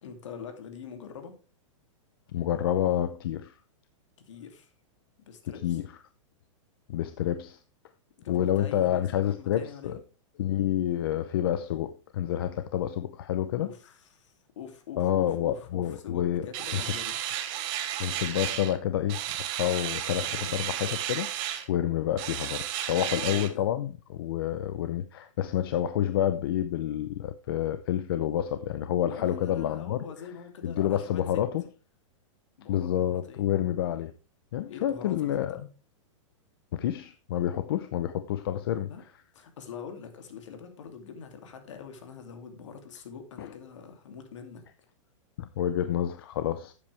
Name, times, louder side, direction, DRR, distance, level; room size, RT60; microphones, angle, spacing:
voice 1, 0.0-1.3 4.2-4.7 5.2-5.8 8.2-10.0 13.6-17.2 20.2-20.7 22.9-23.7 29.1-31.4 32.6-33.5 34.7-35.3 35.5-35.7 38.9-39.0 39.3-44.6, left 6 dB, 65° left, 2.8 m, -44 dB
voice 2, 2.3-3.5 5.6-5.9 6.9-7.6 8.3-10.0 10.4-13.7 15.0-16.5 16.7-16.9 18.0-19.2 19.6-21.3 21.7-30.0 30.6-31.6 32.7-34.1 34.5-35.6 36.7-38.9 43.4-43.5 45.4-46.7, left 11 dB, 45° left, 0.7 m, -28 dB
sound 1, 16.5-18.8 19.1-21.7 22.2-23.5, right 11 dB, 25° right, 1.0 m, -33 dB
12.0 x 8.5 x 3.4 m
supercardioid pair, 175°, 17 cm